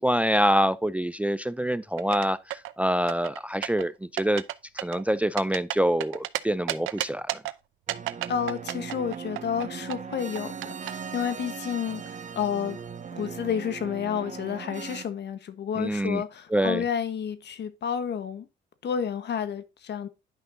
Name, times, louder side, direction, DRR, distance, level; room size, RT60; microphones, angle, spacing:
voice 1, 0.0-4.4 4.7-7.4 15.8-16.2 16.5-16.8, equal, 5° right, 0.4 m, -26 dB
sound 1, 2.0-2.7 3.1-3.8 4.2-4.5 4.8-6.4 6.7-7.5 7.9-9.6 9.9-10.9, right 16 dB, 90° right, 0.7 m, -31 dB
sound 2, 7.9-15.1, right 6 dB, 40° right, 1.2 m, -39 dB
voice 2, 8.3-10.5 10.8-12.8 13.1-18.5 18.8-20.1, left 8 dB, 60° left, 1.3 m, -30 dB
10.5 x 5.9 x 2.7 m
cardioid pair, 90°, 20 cm